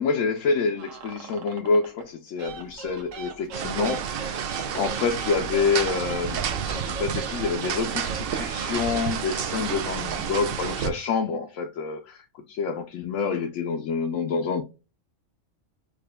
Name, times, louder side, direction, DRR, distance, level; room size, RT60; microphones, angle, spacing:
voice 1, 0.0-4.4 4.7-14.6, left 5 dB, 75° left, 0.9 m, -27 dB
sound 1, 0.8-2.1 2.4-8.8, right 5 dB, 90° right, 1.1 m, -41 dB
sound 2, 3.5-10.9, right 7 dB, 60° right, 0.6 m, -30 dB
4.8 x 2.4 x 2.2 m
omnidirectional pair, 1.3 m